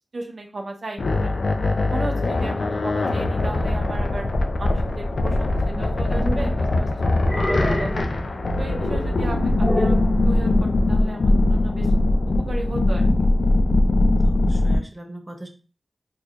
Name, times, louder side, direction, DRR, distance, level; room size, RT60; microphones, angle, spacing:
voice 1, 0.1-1.3 1.9-4.3 4.6-8.1 8.6-10.0 10.2-11.9 12.3-13.1, right 2 dB, 65° right, 2 dB, 0.7 m, -35 dB
sound 1, 1.0-14.8, left 2 dB, 75° left, 0.5 m, -21 dB
sound 2, 5.7-6.5 7.2-8.1 9.6-10.1, left 1 dB, 15° left, 0.9 m, -27 dB
voice 2, 14.2-15.5, right 1 dB, 15° right, 2 dB, 0.7 m, -40 dB
4.4 x 2.7 x 2.4 m, 0.35 s
wide cardioid pair, 80°, 0 cm